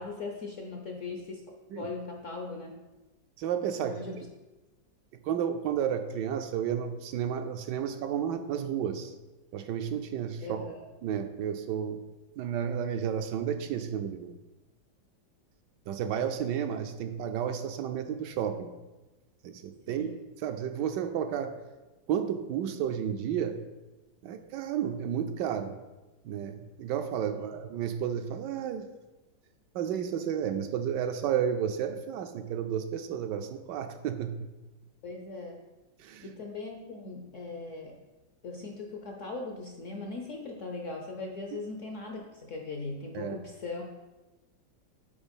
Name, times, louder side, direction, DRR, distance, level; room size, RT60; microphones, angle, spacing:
voice 1, 0.0-1.4 1.8-2.7 3.8-4.2 10.4-10.7 19.9-20.2 27.3-27.5 35.0-35.6 36.2-38.0 38.4-43.9, left 3 dB, 60° left, 2 dB, 0.8 m, -39 dB
voice 2, 3.4-4.2 5.2-9.1 9.5-10.7 11.0-12.0 12.4-14.3 15.9-18.7 19.4-20.1 20.4-21.6 22.1-23.6 24.2-25.8 26.2-28.9 29.7-34.5 36.0-36.3 43.1-43.3, right 8 dB, 75° right, 7 dB, 1.1 m, -32 dB
7.1 x 4.2 x 5.2 m, 1.1 s
omnidirectional pair, 2.0 m